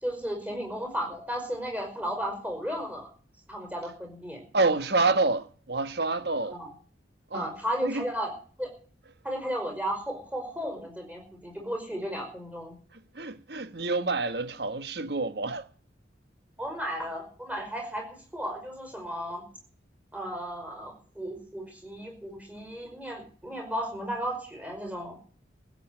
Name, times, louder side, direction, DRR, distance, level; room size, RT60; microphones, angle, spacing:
voice 1, 0.0-3.1 3.5-4.4 6.5-6.7 7.3-8.3 8.6-8.7 9.2-12.7 16.6-19.4 20.1-25.2, equal, 10° right, 5.3 m, -34 dB
voice 2, 4.5-6.6 7.3-7.5 7.8-8.0 13.1-15.7, right 3 dB, 60° right, 1.2 m, -27 dB
15.5 x 8.2 x 8.9 m
head